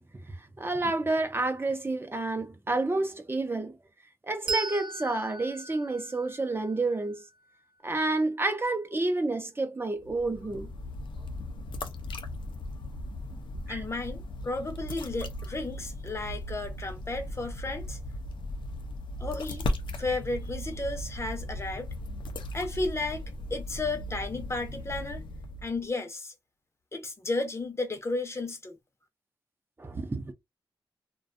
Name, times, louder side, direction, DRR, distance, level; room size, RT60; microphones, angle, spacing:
voice 1, 0.6-3.8 4.2-7.2 7.8-10.7 13.7-13.8 29.8-30.3, right 2 dB, 30° right, 0.6 m, -29 dB
Bell, 4.5-7.6, right 4 dB, 70° right, 0.6 m, -38 dB
sound 1, 10.0-25.9, left 1 dB, 85° left, 0.5 m, -37 dB
voice 2, 13.7-18.0 19.2-19.7 20.0-21.9 22.5-23.2 23.5-25.2 25.6-26.3 26.9-28.8, left 2 dB, 35° left, 0.7 m, -33 dB
2.5 x 2.2 x 2.5 m
cardioid pair, 70°, 8 cm